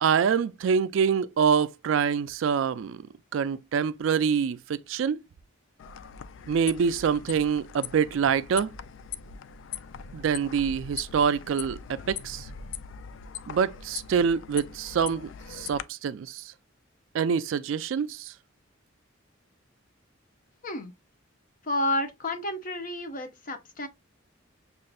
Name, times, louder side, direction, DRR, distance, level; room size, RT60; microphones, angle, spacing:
voice 1, 0.0-3.0 3.3-5.2 6.5-8.7 10.1-12.5 13.5-16.4 17.1-18.3, right 6 dB, 70° right, 0.3 m, -26 dB
sound 1, 5.8-15.8, left 7 dB, 65° left, 0.3 m, -41 dB
voice 2, 21.6-23.9, left 1 dB, 45° left, 0.8 m, -30 dB
6.3 x 2.5 x 2.3 m
head